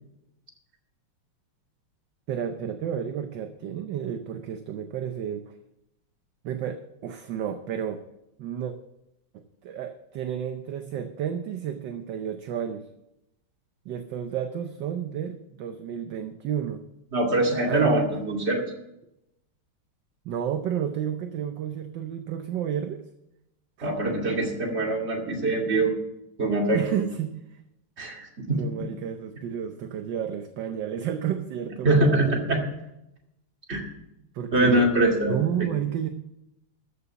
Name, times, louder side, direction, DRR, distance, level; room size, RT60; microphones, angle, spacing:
voice 1, 2.3-5.5 6.4-8.0 8.4-8.7 9.3-12.8 13.8-16.8 17.7-18.0 20.2-23.0 23.8-23.9 26.7-27.6 28.5-32.4 34.3-34.9 35.3-36.1, right 9 dB, 65° right, 7 dB, 1.3 m, -31 dB
voice 2, 17.1-18.6 23.8-25.9 26.4-27.0 28.0-28.9 31.8-32.6 33.7-33.8 34.5-35.4, right 2 dB, 30° right, 0 dB, 2.6 m, -23 dB
13.5 x 7.0 x 6.8 m, 0.85 s
omnidirectional pair, 2.4 m